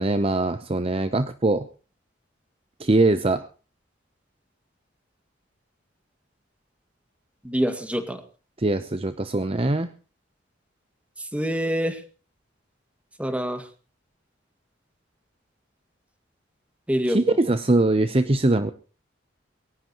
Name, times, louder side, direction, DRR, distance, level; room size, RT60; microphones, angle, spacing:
voice 1, 0.0-1.7 2.8-3.5 8.6-9.9 17.1-18.7, right 2 dB, 30° right, 11 dB, 0.7 m, -22 dB
voice 2, 7.4-8.2 11.2-12.0 13.2-13.7 16.9-17.4, equal, 5° right, 8 dB, 1.9 m, -26 dB
21.5 x 18.0 x 3.0 m, 0.36 s
head